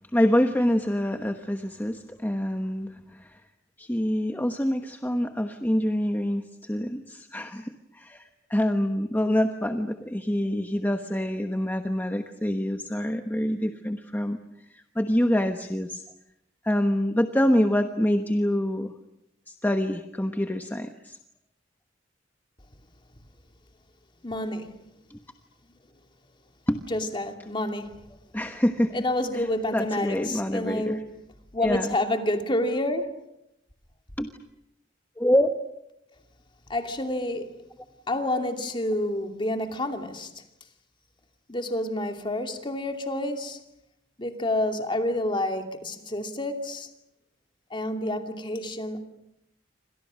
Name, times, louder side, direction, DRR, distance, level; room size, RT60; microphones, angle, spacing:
voice 1, 0.1-3.4 3.8-14.4 14.7-16.0 16.6-18.9 19.5-21.2 25.1-25.2 26.7-26.8 28.3-29.0 29.3-29.5 29.7-31.0 31.6-31.9 34.2-34.3 35.2-35.5, equal, 10° left, 1.2 m, -26 dB
voice 2, 24.2-24.7 26.9-28.1 28.9-31.1 31.5-33.1 36.7-37.5 38.1-40.3 41.5-43.6 44.2-46.9 47.7-49.0, left 1 dB, 25° left, 2.7 m, -28 dB
29.0 x 26.0 x 6.3 m
head